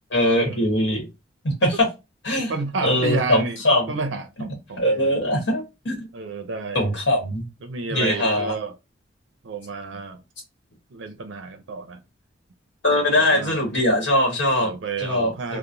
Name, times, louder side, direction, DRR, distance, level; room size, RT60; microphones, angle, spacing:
voice 1, 0.1-1.1 1.4-1.9 2.2-2.5 2.8-3.9 4.8-6.1 6.7-7.4 7.9-8.5 12.8-14.7 15.0-15.3, left 1 dB, 65° left, 1.2 m, -21 dB
voice 2, 2.5-3.6 3.9-5.3 6.1-6.9 7.6-8.8 9.4-10.2 10.9-12.0 12.9-13.6 14.6-15.6, right 3 dB, 85° right, 0.5 m, -31 dB
2.9 x 2.0 x 2.4 m
head